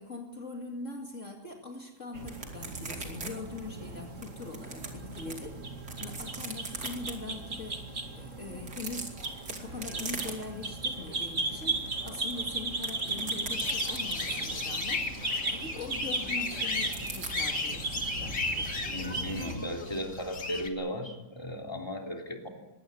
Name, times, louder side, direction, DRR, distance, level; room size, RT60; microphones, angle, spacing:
voice 1, 0.0-7.8 8.1-15.1 15.4-18.7 19.0-19.2, left 3 dB, 45° left, 2 dB, 2.6 m, -42 dB
sound 1, 2.1-19.6, right 3 dB, 45° right, 2.8 m, -36 dB
sound 2, 2.3-3.3 3.6-3.7 4.2-5.4 5.8-7.1 8.6-10.7 11.1-11.3 11.6-14.4 16.9-17.3, right 3 dB, 65° right, 3.5 m, -40 dB
sound 3, 13.5-20.7, left 4 dB, 60° left, 2.6 m, -35 dB
voice 2, 18.9-22.5, equal, 15° left, 1 dB, 3.4 m, -36 dB
21.5 x 17.5 x 9.8 m, 1.1 s
omnidirectional pair, 1.8 m